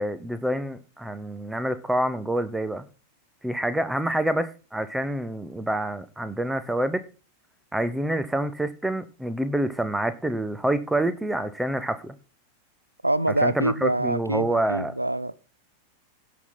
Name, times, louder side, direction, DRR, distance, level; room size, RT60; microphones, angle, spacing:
voice 1, 0.0-2.8 3.4-7.0 7.7-12.1 13.4-14.9, right 1 dB, 5° right, 0.9 m, -27 dB
voice 2, 13.0-15.3, right 1 dB, 85° right, 0.6 m, -25 dB
17.0 x 5.8 x 4.0 m
figure-of-eight pair, 90°, 0 cm